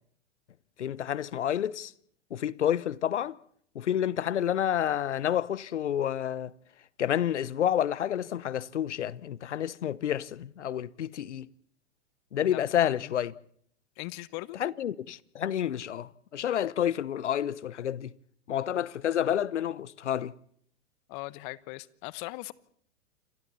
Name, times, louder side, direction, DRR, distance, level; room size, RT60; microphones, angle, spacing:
voice 1, 0.8-1.9 2.3-3.4 3.7-6.5 7.0-11.5 12.3-13.3 14.6-18.1 18.5-20.3, left 10 dB, 80° left, 1.0 m, -29 dB
voice 2, 12.4-13.1 14.0-14.6 21.1-22.5, left 22 dB, 45° left, 1.1 m, -40 dB
28.5 x 24.0 x 4.2 m
hypercardioid pair, 105°, 35 cm